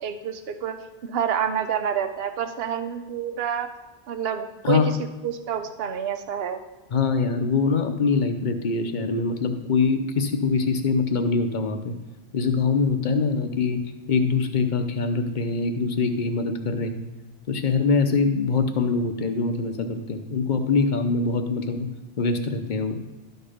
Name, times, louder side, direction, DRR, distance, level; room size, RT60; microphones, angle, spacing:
voice 1, 0.0-0.8 1.0-3.7 4.1-4.8 5.2-6.6, right 8 dB, 65° right, 8 dB, 0.9 m, -28 dB
voice 2, 6.9-11.9 12.3-13.8 14.1-17.0 17.5-21.9 22.2-23.0, left 4 dB, 45° left, 7 dB, 0.9 m, -23 dB
12.5 x 4.6 x 5.0 m, 1.2 s
omnidirectional pair, 1.1 m